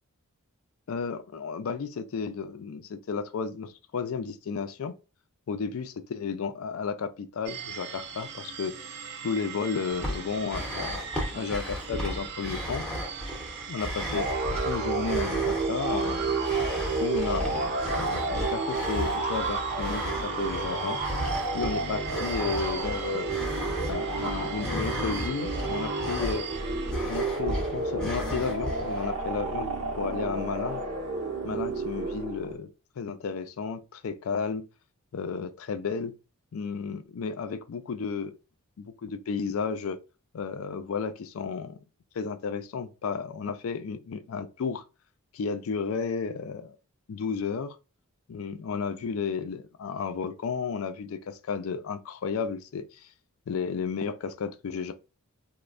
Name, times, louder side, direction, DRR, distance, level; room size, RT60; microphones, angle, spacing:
voice 1, 0.9-5.0 5.5-8.8 9.2-11.1 11.3-12.8 13.7-14.3 14.7-16.4 17.0-21.0 21.5-23.3 23.9-26.5 27.0-29.7 30.0-30.8 31.4-32.7 33.0-34.7 35.1-36.1 36.5-38.3 38.8-40.0 40.3-41.8 42.1-44.8 45.3-46.7 47.1-47.8 48.3-53.1 53.5-54.9, left 5 dB, 70° left, 0.4 m, -33 dB
sound 1, 7.4-26.9, right 7 dB, 50° right, 0.4 m, -40 dB
sound 2, 9.9-29.1, equal, 5° left, 0.7 m, -35 dB
sound 3, 14.1-32.6, right 3 dB, 80° right, 0.8 m, -31 dB
3.1 x 2.1 x 2.4 m
head